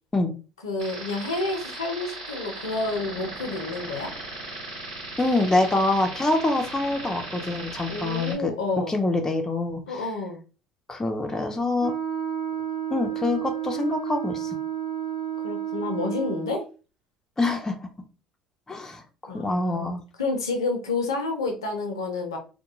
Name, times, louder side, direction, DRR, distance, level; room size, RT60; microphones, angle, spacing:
voice 1, 0.6-4.1 7.9-9.0 9.9-10.4 15.4-16.6 19.3-19.9 20.2-22.4, left 3 dB, 85° left, 4 dB, 0.6 m, -29 dB
sound 1, 0.8-8.4, right 2 dB, 85° right, 1.1 m, -37 dB
voice 2, 5.2-8.5 8.9-10.1 10.9-11.9 12.9-14.6 17.4-17.9 18.7-20.0, left 2 dB, 20° left, 4 dB, 0.5 m, -25 dB
Wind instrument woodwind instrument, 11.8-16.7, right 9 dB, 65° right, 0.9 m, -31 dB
2.2 x 2.1 x 2.9 m, 0.34 s
hypercardioid pair, 60°, 3 cm